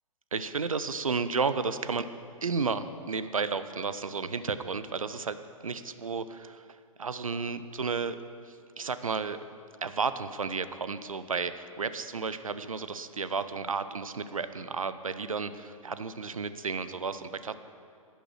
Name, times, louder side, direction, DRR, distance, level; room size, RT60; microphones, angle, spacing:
voice 1, 0.3-2.1 2.4-5.4 5.6-8.2 8.5-9.4 9.8-17.5, right 5 dB, 75° right, 12 dB, 0.7 m, -32 dB
10.5 x 10.0 x 6.3 m, 2.4 s
figure-of-eight pair, 115°, 18 cm